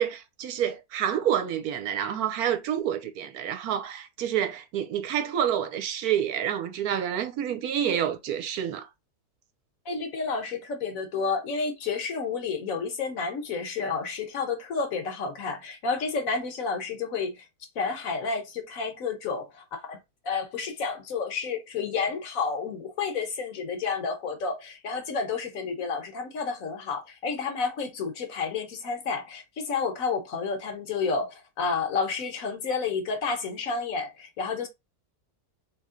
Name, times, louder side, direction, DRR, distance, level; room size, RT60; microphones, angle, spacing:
voice 1, 0.0-8.9, right 9 dB, 70° right, 1.1 m, -28 dB
voice 2, 9.9-17.4 17.8-20.0 20.2-34.7, left 5 dB, 65° left, 1.1 m, -30 dB
3.2 x 2.8 x 3.6 m
omnidirectional pair, 1.7 m